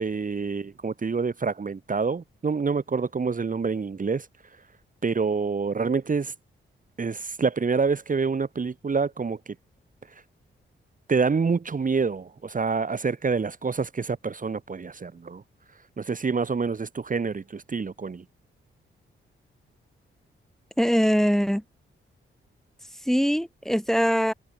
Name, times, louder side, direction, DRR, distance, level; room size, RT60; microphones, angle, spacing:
voice 1, 0.0-4.3 5.0-6.3 7.0-9.5 11.1-15.4 16.0-18.2, right 5 dB, 40° right, 1.6 m, -27 dB
voice 2, 20.8-21.6 23.1-24.3, equal, ahead, 1.9 m, -22 dB
cardioid pair, 70°, 21 cm